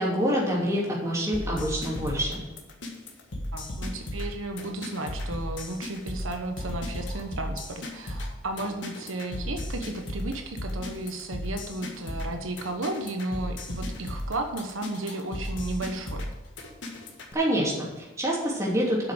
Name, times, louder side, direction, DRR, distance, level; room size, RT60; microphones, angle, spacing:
voice 1, 0.0-2.4 17.3-19.0, equal, 15° right, -4 dB, 3.0 m, -26 dB
sound 1, 1.3-17.3, left 1 dB, 65° left, 1.8 m, -35 dB
voice 2, 3.5-16.3, right 2 dB, 85° right, 4 dB, 1.1 m, -34 dB
8.3 x 6.3 x 7.7 m, 1.2 s
head